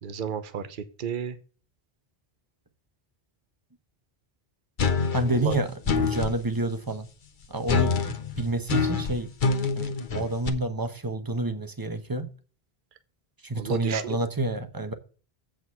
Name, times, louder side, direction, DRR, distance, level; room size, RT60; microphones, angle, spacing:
voice 1, 0.0-1.4 5.3-5.6 13.6-14.0, right 7 dB, 55° right, 1.0 m, -32 dB
sound 1, 4.8-6.4 7.7-10.5, left 5 dB, 55° left, 1.0 m, -26 dB
voice 2, 5.1-7.1 7.5-9.3 9.8-12.3 13.4-14.9, right 2 dB, 20° right, 0.9 m, -29 dB
7.9 x 5.0 x 7.0 m
omnidirectional pair, 1.0 m